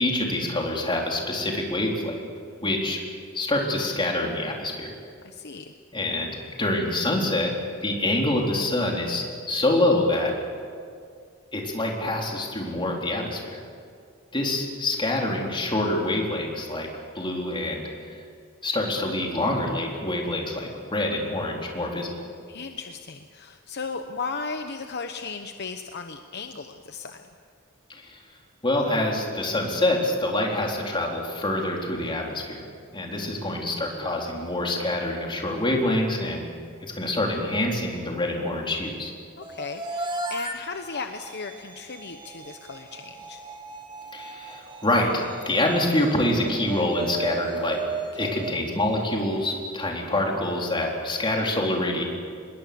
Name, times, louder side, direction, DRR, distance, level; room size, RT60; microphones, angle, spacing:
voice 1, 0.0-2.2 2.6-3.0 3.3-4.9 5.9-7.6 7.8-10.3 11.5-13.6 14.3-16.9 17.1-18.2 18.6-22.1 27.9-28.2 28.6-32.7 32.9-36.5 36.9-39.1 44.1-47.8 48.2-52.0, left 1 dB, 25° left, 0 dB, 3.9 m, -26 dB
voice 2, 5.2-5.7 22.5-27.2 39.4-43.4 48.1-48.3, left 4 dB, 50° left, 6 dB, 1.0 m, -36 dB
sound 1, 39.4-49.6, right 3 dB, 20° right, 1.9 m, -36 dB
26.0 x 21.0 x 7.0 m, 2.3 s
head